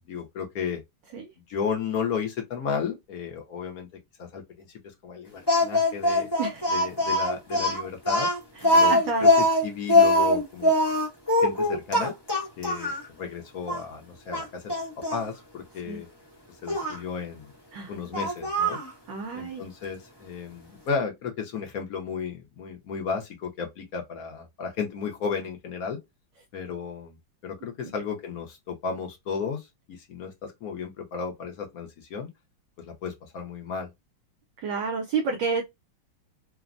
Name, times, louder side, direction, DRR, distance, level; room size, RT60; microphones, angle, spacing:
voice 1, 0.1-0.8 1.5-3.9 4.2-6.3 6.7-8.3 8.7-8.9 9.2-10.7 11.4-12.1 12.6-14.8 15.1-16.1 16.6-17.5 17.9-18.8 19.3-26.0 26.5-27.2 27.4-32.3 32.8-33.9, left 6 dB, 65° left, 0.9 m, -33 dB
Speech, 5.5-13.0 13.7-13.8 14.3-15.3 16.7-17.0 18.1-18.9, left 1 dB, 20° left, 0.7 m, -22 dB
voice 2, 6.4-6.7 8.6-9.3 15.9-16.0 17.7-17.9 19.1-19.7 34.6-35.6, right 4 dB, 70° right, 1.1 m, -30 dB
3.3 x 2.1 x 2.4 m
omnidirectional pair, 2.2 m